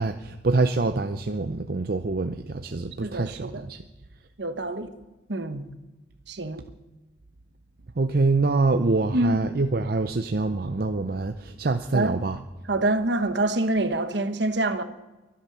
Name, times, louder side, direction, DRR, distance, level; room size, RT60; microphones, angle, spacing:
voice 1, 0.0-3.8 8.0-12.4, right 3 dB, 50° right, 0.6 m, -25 dB
voice 2, 3.0-3.7 4.4-4.9 5.3-5.6 6.3-6.6 9.1-9.4 11.9-12.2 12.7-14.8, right 2 dB, 65° right, 1.3 m, -26 dB
23.0 x 8.6 x 6.2 m
head